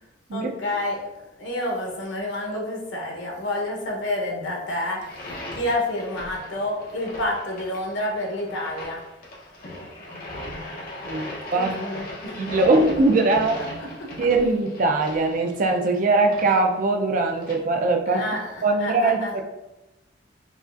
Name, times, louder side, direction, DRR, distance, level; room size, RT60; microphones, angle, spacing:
voice 1, 0.3-1.0 1.4-9.0 11.5-12.6 18.1-19.3, left 1 dB, 85° left, -1 dB, 0.9 m, -29 dB
sound 1, 4.9-17.6, left 1 dB, 50° left, 0.9 m, -39 dB
voice 2, 11.1-11.8 12.3-13.6 14.2-18.3 18.6-19.4, right 2 dB, 45° right, 3 dB, 0.4 m, -21 dB
4.9 x 2.3 x 2.5 m, 1.0 s
head